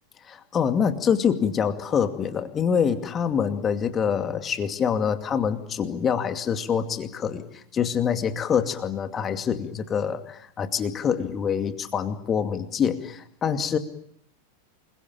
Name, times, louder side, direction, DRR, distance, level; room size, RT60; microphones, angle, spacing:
voice 1, 0.2-13.8, left 7 dB, 25° left, 9 dB, 2.4 m, -25 dB
28.0 x 22.0 x 8.9 m, 0.68 s
figure-of-eight pair, 90°, 0 cm